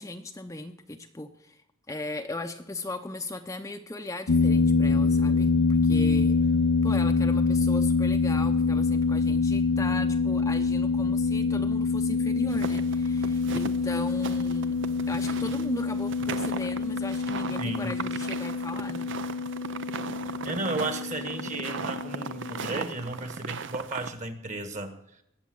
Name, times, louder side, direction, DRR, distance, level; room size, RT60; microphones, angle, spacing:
voice 1, 0.0-6.5 6.8-14.8 15.1-19.1, left 2 dB, 15° left, 5 dB, 0.7 m, -37 dB
sound 1, 4.3-22.7, left 4 dB, 70° left, 0.5 m, -26 dB
sound 2, 12.5-24.1, right 5 dB, 60° right, 0.7 m, -37 dB
voice 2, 17.6-18.0 20.4-25.0, right 2 dB, 35° right, 8 dB, 1.6 m, -34 dB
20.5 x 7.9 x 7.8 m, 0.76 s
head